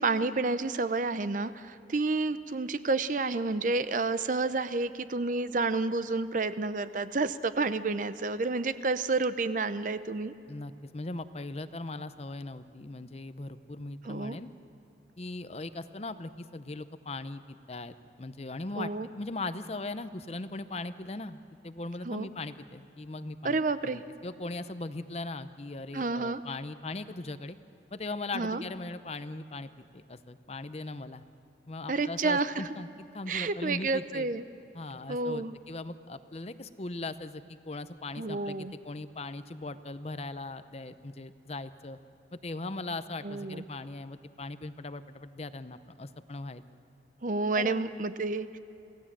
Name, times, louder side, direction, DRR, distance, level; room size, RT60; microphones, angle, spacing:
voice 1, 0.0-10.3 14.1-14.4 18.8-19.1 22.1-22.3 23.4-24.0 25.9-26.4 28.3-28.6 31.9-32.6 33.3-34.4 35.1-35.5 38.2-38.7 43.2-43.6 47.2-48.6, right 3 dB, 45° right, 13 dB, 0.6 m, -30 dB
voice 2, 10.5-14.5 15.2-18.9 19.2-23.6 23.8-27.6 27.9-31.2 31.7-34.3 34.7-42.0 42.4-46.6 47.5-47.9, left 2 dB, 35° left, 12 dB, 0.7 m, -39 dB
27.0 x 17.5 x 7.4 m, 2.8 s
head